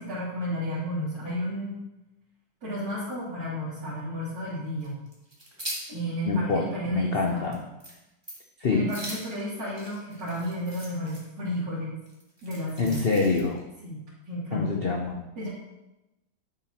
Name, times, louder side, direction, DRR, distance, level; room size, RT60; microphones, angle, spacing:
voice 1, 0.0-1.8 2.6-5.0 5.9-7.5 8.7-12.0 12.4-13.0 13.8-14.7 15.4-15.5, equal, 65° right, -12 dB, 3.4 m, -32 dB
sound 1, 4.8-5.9 6.3-6.4 6.9-7.0 7.2-7.5 7.8-8.0 8.2-8.5 8.9-11.2 12.1-13.6, right 1 dB, 15° right, 1.9 m, -40 dB
voice 2, 6.3-7.6 8.6-8.9 12.8-13.6 14.5-15.2, left 4 dB, 50° left, 2 dB, 0.7 m, -26 dB
10.0 x 7.9 x 2.9 m, 0.95 s
omnidirectional pair, 2.0 m